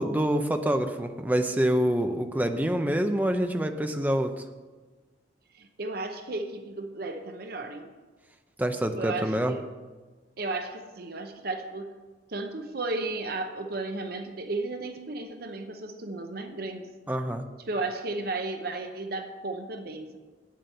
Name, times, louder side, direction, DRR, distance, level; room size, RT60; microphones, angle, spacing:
voice 1, 0.0-4.3 8.6-9.6 17.1-17.5, right 1 dB, 10° right, 6 dB, 0.6 m, -26 dB
voice 2, 5.5-7.9 8.9-9.7 10.4-12.0 12.3-16.9 17.6-20.2, right 2 dB, 55° right, 6 dB, 0.8 m, -34 dB
8.8 x 7.6 x 6.7 m, 1.3 s
head